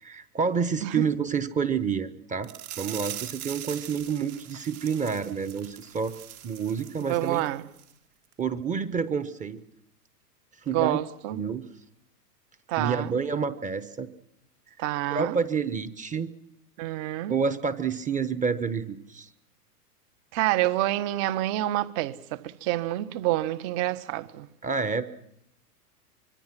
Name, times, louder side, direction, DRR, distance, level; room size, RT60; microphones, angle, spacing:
voice 1, 0.0-2.5 2.8-6.1 6.4-7.4 8.4-9.6 10.6-11.0 11.3-11.7 12.8-14.1 14.7-14.8 15.1-16.3 17.3-19.3 24.6-25.0, right 6 dB, 15° right, 1.1 m, -28 dB
sound 1, 2.4-7.5 7.8-7.9 8.3-8.4, right 12 dB, 65° right, 3.1 m, -41 dB
voice 2, 7.1-7.6 10.7-11.4 12.7-13.1 14.8-15.4 16.8-17.3 20.3-24.5, right 15 dB, 40° right, 1.4 m, -28 dB
25.5 x 22.0 x 6.1 m
hypercardioid pair, 115°, 48 cm